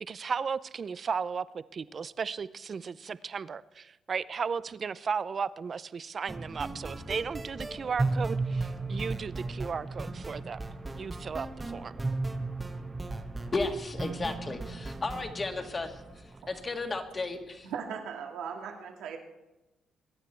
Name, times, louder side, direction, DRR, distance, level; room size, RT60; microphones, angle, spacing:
voice 1, 0.0-10.7 11.0-11.9, right 6 dB, 45° right, 16 dB, 0.6 m, -35 dB
sound 1, 6.3-17.2, right 2 dB, 20° right, 1.1 m, -35 dB
voice 2, 13.5-17.7, left 3 dB, 30° left, 5 dB, 1.9 m, -34 dB
voice 3, 17.6-19.2, right 7 dB, 85° right, 3 dB, 2.1 m, -38 dB
22.0 x 9.7 x 4.5 m, 1.0 s
cardioid pair, 90°, 0 cm